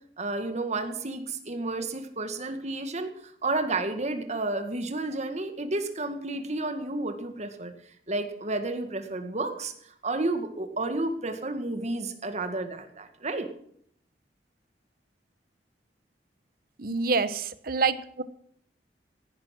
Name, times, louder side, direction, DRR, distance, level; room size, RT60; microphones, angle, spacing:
voice 1, 0.2-7.7 8.1-13.5, right 2 dB, 40° right, 7 dB, 2.0 m, -31 dB
voice 2, 16.8-18.2, right 4 dB, 55° right, 14 dB, 1.0 m, -27 dB
16.5 x 10.5 x 6.1 m, 0.66 s
head